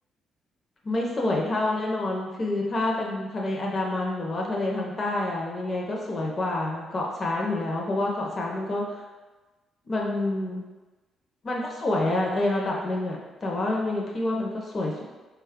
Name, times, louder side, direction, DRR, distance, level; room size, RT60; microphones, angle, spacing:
voice 1, 0.8-9.0 9.9-10.6 11.4-15.0, left 2 dB, 40° left, -2 dB, 0.7 m, -28 dB
3.9 x 2.3 x 3.5 m, 1.2 s
cardioid pair, 90°, 0 cm